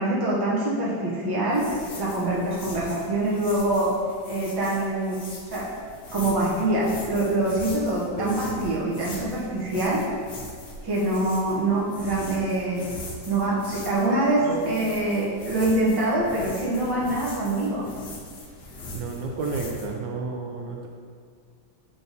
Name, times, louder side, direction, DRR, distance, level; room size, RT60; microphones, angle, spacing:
voice 1, 0.0-3.9 4.3-5.2 5.5-5.7 6.1-10.0 10.8-12.8 13.3-17.9, right 1 dB, 15° right, -6 dB, 0.8 m, -25 dB
sound 1, 1.5-19.9, left 1 dB, 55° left, 0.7 m, -41 dB
voice 2, 8.2-8.6 14.4-14.7 18.9-20.9, right 4 dB, 75° right, 1 dB, 1.2 m, -31 dB
6.9 x 3.8 x 4.0 m, 2.1 s
omnidirectional pair, 2.1 m